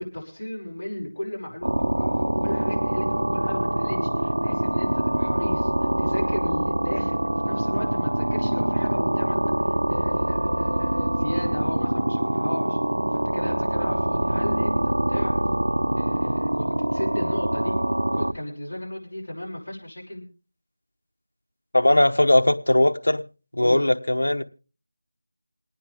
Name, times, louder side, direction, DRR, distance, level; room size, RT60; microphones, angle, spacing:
voice 1, 0.0-12.8 13.1-15.4 15.9-17.8 18.1-20.2 23.6-23.9, left 1 dB, 40° left, 5.8 m, -35 dB
sound 1, 1.6-18.3, right 1 dB, 90° right, 0.8 m, -24 dB
voice 2, 21.7-23.2 23.5-24.4, left 1 dB, 85° left, 1.1 m, -19 dB
28.0 x 9.4 x 3.6 m
figure-of-eight pair, 170°, 0 cm